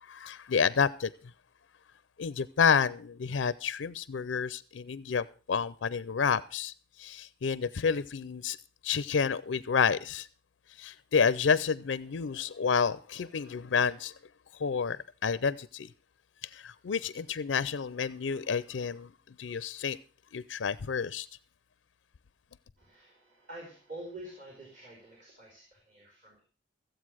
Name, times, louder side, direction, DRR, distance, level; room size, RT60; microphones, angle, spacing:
voice 1, 0.1-1.1 2.2-6.7 7.0-8.6 8.8-10.3 10.8-14.1 14.6-15.9 16.4-19.1 19.4-20.0 20.3-21.3, left 6 dB, 85° left, 0.5 m, -29 dB
voice 2, 22.8-26.4, right 1 dB, 40° right, 4.0 m, -47 dB
15.0 x 7.9 x 6.2 m
head